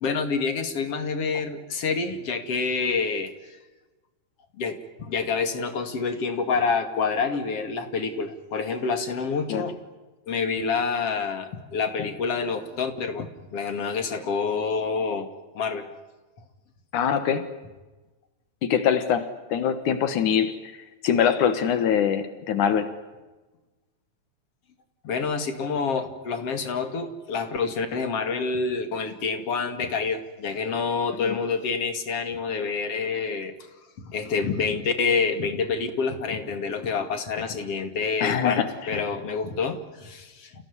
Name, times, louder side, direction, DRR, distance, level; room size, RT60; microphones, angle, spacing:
voice 1, 0.0-3.3 4.6-9.8 10.3-15.3 15.5-15.9 25.0-33.5 34.0-40.6, left 5 dB, 50° left, 8 dB, 3.2 m, -27 dB
voice 2, 16.9-17.5 18.6-20.5 21.0-22.9 38.2-38.7, left 8 dB, 80° left, 10 dB, 2.9 m, -23 dB
29.0 x 17.5 x 9.8 m, 1.2 s
omnidirectional pair, 3.5 m